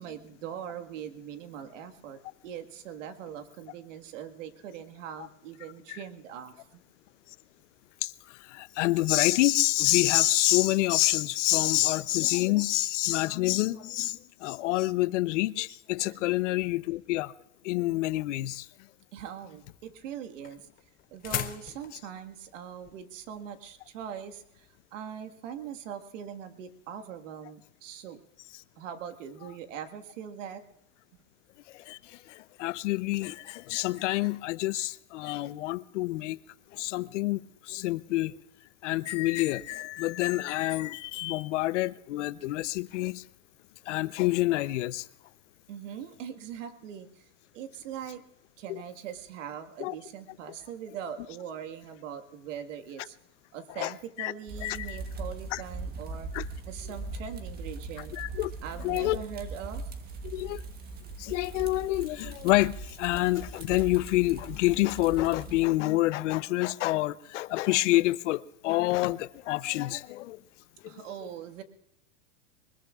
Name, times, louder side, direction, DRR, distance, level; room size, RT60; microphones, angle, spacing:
voice 1, 0.0-6.8 16.0-16.2 19.1-20.7 21.1-28.2 28.8-30.6 45.7-47.3 47.5-48.2 48.6-53.2 53.5-56.3 56.7-58.1 58.6-59.8 70.9-71.6, right 8 dB, 70° right, 1.8 m, -41 dB
voice 2, 8.0-17.3 17.6-18.7 31.7-36.4 36.7-38.3 38.8-43.2 43.9-45.1 48.7-48.8 49.8-49.9 53.8-53.9 54.2-54.3 54.6-55.0 55.5-55.6 56.3-56.4 58.1-58.5 58.8-59.2 60.2-60.6 61.2-70.4 70.8-71.0, left 18 dB, 65° left, 0.7 m, -27 dB
sound 1, 19.6-24.8, left 13 dB, 20° left, 0.7 m, -40 dB
sound 2, 54.5-65.7, right 3 dB, 25° right, 1.4 m, -40 dB
23.5 x 21.0 x 2.4 m
supercardioid pair, 145°, 39 cm